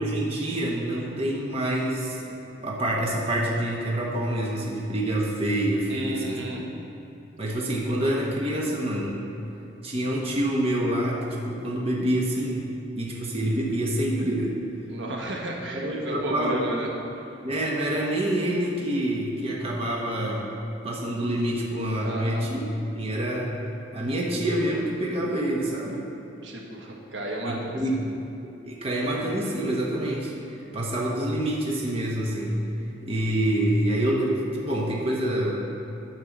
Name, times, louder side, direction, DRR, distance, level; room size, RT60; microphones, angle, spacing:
voice 1, 0.0-6.4 7.4-9.2 9.8-12.7 13.0-14.6 15.7-16.8 17.4-20.5 20.8-22.6 22.9-23.5 23.9-26.0 27.4-28.0 28.4-30.3 30.7-32.7 33.0-35.7, right 1 dB, 30° right, -2 dB, 1.0 m, -27 dB
voice 2, 5.9-6.7 14.9-16.9 22.0-22.5 26.4-27.7, right 1 dB, 75° right, 0 dB, 1.3 m, -33 dB
9.9 x 4.5 x 7.2 m, 2.9 s
head